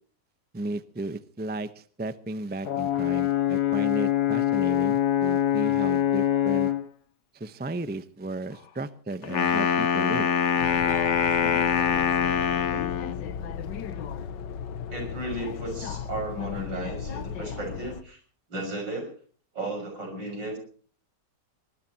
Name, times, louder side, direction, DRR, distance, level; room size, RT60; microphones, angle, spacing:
voice 1, 0.5-6.7 7.3-10.3, right 2 dB, 10° right, 13 dB, 0.4 m, -34 dB
Brass instrument, 2.6-6.9, left 12 dB, 65° left, 2.0 m, -24 dB
Wind instrument woodwind instrument, 9.2-13.2, left 6 dB, 50° left, 1.1 m, -24 dB
sound 1, 10.6-18.0, left 8 dB, 90° left, 1.6 m, -36 dB
voice 2, 14.9-18.2 18.5-19.1 19.5-20.6, right 2 dB, 85° right, 5 dB, 6.8 m, -34 dB
21.5 x 19.5 x 2.9 m, 0.43 s
omnidirectional pair, 1.9 m